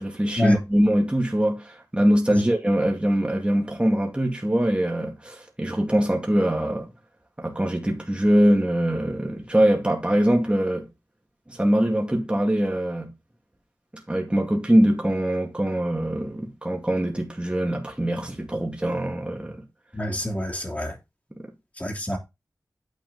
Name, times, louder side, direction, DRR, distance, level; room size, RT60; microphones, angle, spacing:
voice 1, 0.0-6.9 7.4-10.9 11.5-13.1 14.1-19.6, right 1 dB, 15° right, 2.2 m, -23 dB
voice 2, 19.9-20.9 21.8-22.2, left 1 dB, 25° left, 3.1 m, -27 dB
9.5 x 4.8 x 4.0 m
cardioid pair, 50°, 6 cm